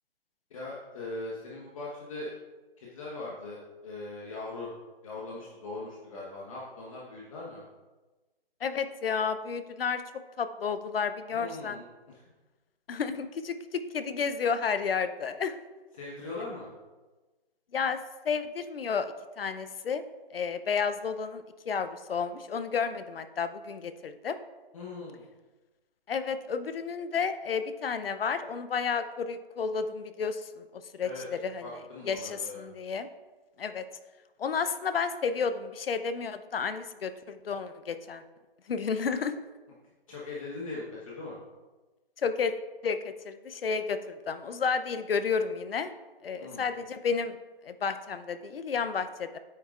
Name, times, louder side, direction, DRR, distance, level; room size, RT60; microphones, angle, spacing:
voice 1, 0.5-2.3 2.8-4.7 5.0-7.6 11.3-11.8 15.9-16.7 24.7-25.3 31.0-31.3 31.6-32.6 40.1-41.4 46.4-46.7, left 2 dB, 35° left, -5 dB, 1.3 m, -40 dB
voice 2, 8.6-10.0 10.4-11.8 12.9-15.5 17.7-18.0 18.2-20.0 20.3-24.4 26.1-31.7 32.0-33.1 33.6-33.8 34.4-38.2 38.7-39.3 42.2-42.5 42.8-45.9 46.2-47.4 47.6-49.4, left 6 dB, 70° left, 11 dB, 0.8 m, -31 dB
9.3 x 8.6 x 2.5 m, 1.2 s
hypercardioid pair, 165°, 30 cm